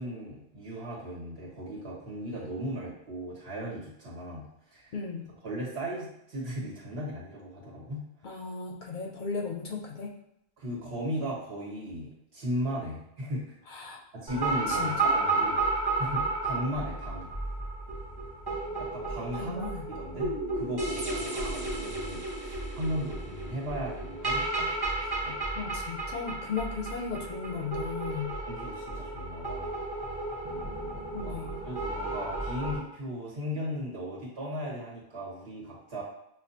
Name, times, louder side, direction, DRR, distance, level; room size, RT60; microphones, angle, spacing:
voice 1, 0.0-4.4 4.7-4.9 5.4-8.0 10.6-13.5 14.1-17.3 18.8-19.6 19.9-25.4 28.5-29.7 31.2-36.0, equal, 80° right, -6 dB, 1.7 m, -37 dB
voice 2, 4.9-5.3 8.2-10.1 13.7-14.0 14.7-15.1 19.3-19.9 25.6-28.3 31.1-31.6, left 5 dB, 60° left, 1 dB, 0.6 m, -36 dB
sound 1, 14.3-32.8, right 3 dB, 25° right, 0.8 m, -32 dB
6.1 x 2.2 x 2.8 m, 0.79 s
omnidirectional pair, 1.0 m